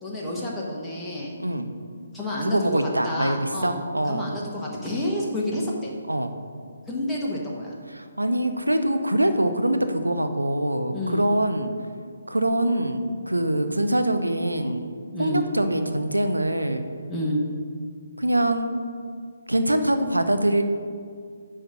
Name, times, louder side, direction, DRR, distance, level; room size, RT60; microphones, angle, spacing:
voice 1, 0.0-1.3 2.1-2.7 3.0-3.8 4.1-5.9 6.9-7.7 10.9-11.2 15.1-15.4 17.1-17.4, left 1 dB, 5° left, -6 dB, 1.4 m, -29 dB
voice 2, 1.4-1.7 2.4-4.3 6.1-6.3 7.9-11.7 12.3-16.8 18.2-18.8 19.5-20.6, right 1 dB, 80° right, 8 dB, 0.8 m, -24 dB
9.9 x 3.7 x 6.8 m, 2.1 s
figure-of-eight pair, 140°, 0 cm